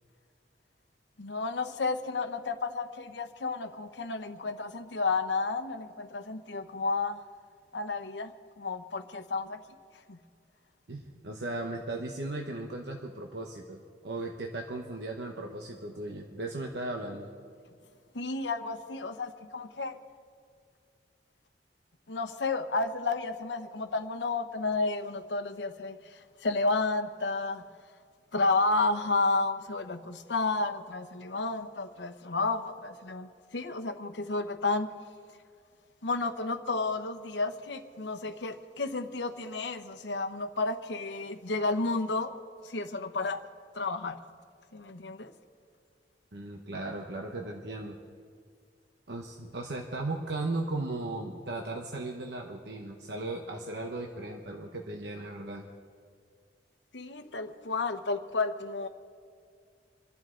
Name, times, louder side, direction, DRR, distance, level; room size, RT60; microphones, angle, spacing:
voice 1, 1.2-7.2 7.7-9.6 9.9-10.2 18.1-20.0 22.1-27.7 28.3-34.9 36.0-42.3 42.6-43.4 43.7-44.2 44.7-45.3 56.9-58.9, left 3 dB, 80° left, 9 dB, 1.0 m, -31 dB
voice 2, 10.9-17.3 46.3-48.0 49.1-55.7, right 2 dB, 70° right, 2 dB, 1.0 m, -37 dB
27.5 x 11.0 x 3.8 m, 2.2 s
head